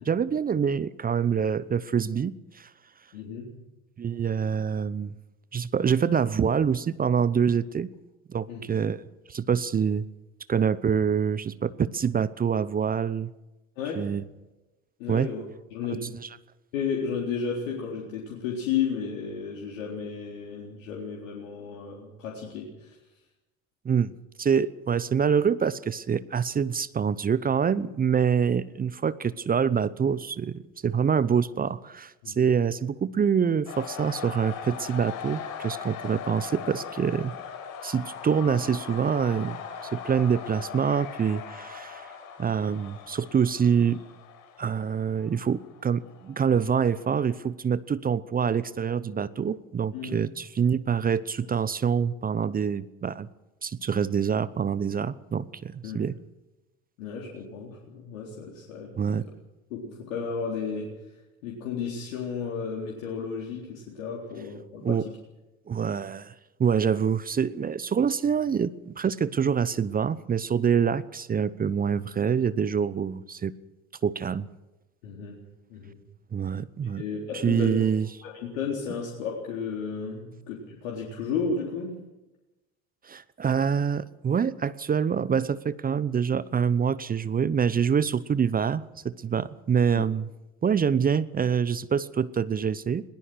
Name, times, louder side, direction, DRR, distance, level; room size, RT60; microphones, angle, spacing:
voice 1, 0.0-2.7 4.0-5.1 5.5-7.9 8.3-9.0 9.3-10.0 10.5-13.3 13.9-14.2 15.1-15.3 23.8-24.1 24.4-37.3 37.8-39.6 39.9-42.1 42.4-44.0 44.6-53.3 53.6-56.2 59.0-59.2 64.8-65.1 65.7-66.3 66.6-73.5 74.0-74.5 76.3-77.0 77.3-78.1 83.0-90.3 90.6-93.0, right 7 dB, 20° right, 18 dB, 0.8 m, -26 dB
voice 2, 3.1-3.5 8.5-8.7 13.8-14.1 15.0-15.4 15.7-16.1 16.7-23.0 32.2-32.4 49.9-50.1 55.8-56.0 57.0-59.3 59.7-60.9 61.4-65.1 75.0-75.4 75.7-76.0 77.0-77.8 78.2-82.0 89.9-90.0, left 6 dB, 65° left, -2 dB, 4.0 m, -33 dB
sound 1, 33.7-47.5, left 7 dB, 50° left, 5.1 m, -40 dB
21.0 x 19.5 x 6.3 m, 1.0 s
hypercardioid pair, 75°, 41 cm